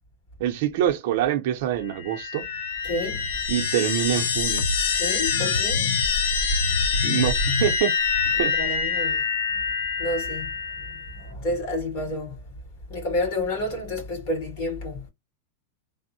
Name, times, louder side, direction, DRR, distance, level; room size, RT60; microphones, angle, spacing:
voice 1, 0.4-2.5 3.5-4.7 7.0-7.9 8.4-8.7, right 11 dB, 50° right, 0.6 m, -25 dB
sound 1, 1.9-11.2, left 5 dB, 70° left, 0.8 m, -25 dB
voice 2, 2.8-3.3 5.0-5.9 8.6-9.2 10.0-10.5 10.9-12.4 12.9-15.0, left 1 dB, 45° left, 2.1 m, -29 dB
3.5 x 2.1 x 2.6 m
supercardioid pair, 170°, 0 cm